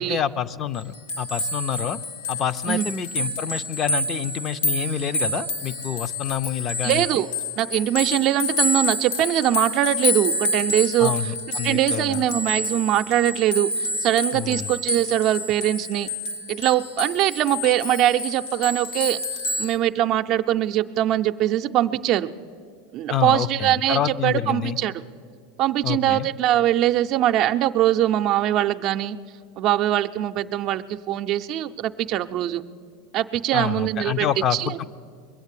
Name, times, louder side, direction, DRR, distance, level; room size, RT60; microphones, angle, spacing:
voice 1, 0.0-2.0 2.3-7.2 11.0-12.3 14.3-14.7 23.1-24.8 25.8-26.3 33.5-34.8, left 9 dB, 40° left, 12 dB, 0.5 m, -27 dB
sound 1, 0.8-19.7, left 2 dB, 80° left, 1.2 m, -28 dB
voice 2, 6.8-7.3 7.6-11.1 11.6-16.1 16.5-19.2 19.6-22.3 22.9-25.0 25.6-29.2 29.6-32.6 33.1-34.8, right 13 dB, 50° right, 10 dB, 0.5 m, -22 dB
21.5 x 8.0 x 8.3 m, 2.3 s
hypercardioid pair, 105°, 0 cm